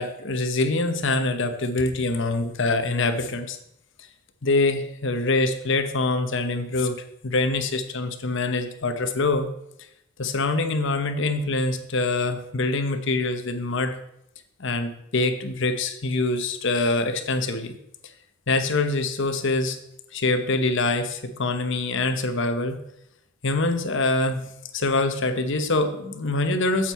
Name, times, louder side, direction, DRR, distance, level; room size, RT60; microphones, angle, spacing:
voice 1, 0.0-3.6 4.4-9.5 10.2-14.0 14.6-17.7 18.5-19.8 20.1-22.8 23.4-24.5 24.7-26.9, left 2 dB, 60° left, 9 dB, 0.9 m, -24 dB
9.1 x 7.4 x 4.3 m, 0.76 s
head